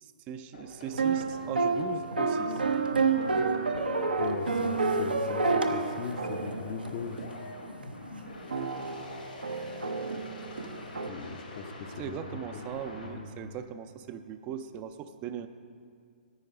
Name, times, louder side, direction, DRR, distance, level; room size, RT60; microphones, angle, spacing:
voice 1, 0.0-2.6 12.0-15.5, right 8 dB, 30° right, 9 dB, 0.4 m, -39 dB
sound 1, 0.5-13.1, left 1 dB, 80° left, 3.1 m, -45 dB
sound 2, 0.9-7.4 7.8-7.9 8.5-11.1, right 4 dB, 85° right, 0.7 m, -29 dB
voice 2, 4.2-7.2 11.1-12.2 12.5-12.6 13.0-13.4, left 5 dB, 45° left, 8 dB, 0.7 m, -39 dB
9.8 x 9.1 x 5.0 m, 2.2 s
figure-of-eight pair, 125°, 5 cm